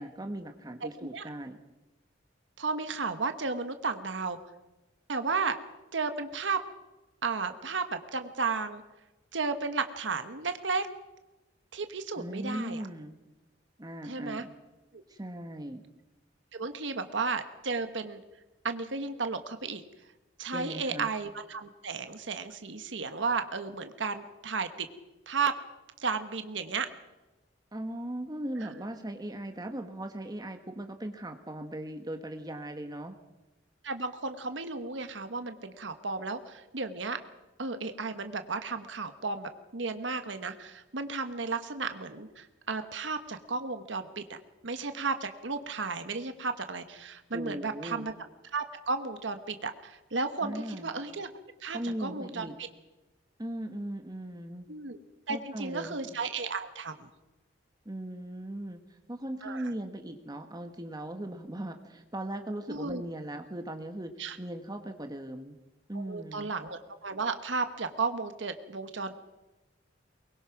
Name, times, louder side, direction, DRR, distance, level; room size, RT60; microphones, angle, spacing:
voice 1, 0.0-1.6 12.2-13.2 13.8-14.5 15.1-15.8 20.5-21.1 27.7-33.2 47.3-48.1 50.4-50.9 51.7-52.6 53.4-54.7 55.3-55.9 57.8-65.6 65.9-66.5, right 1 dB, 20° right, 6 dB, 1.3 m, -38 dB
voice 2, 2.6-4.4 5.1-5.6 5.9-6.6 7.2-8.8 9.3-10.9 11.7-12.8 14.0-14.4 14.9-15.0 16.5-18.2 18.6-19.8 20.4-24.9 25.3-25.5 26.0-26.9 33.8-37.2 37.6-44.4 44.6-48.1 48.5-51.3 51.6-52.7 54.7-55.0 55.3-57.1 59.4-59.7 62.7-63.0 64.2-64.4 65.9-69.2, right 4 dB, 75° right, 8 dB, 1.3 m, -33 dB
23.5 x 21.0 x 6.0 m, 1.1 s
head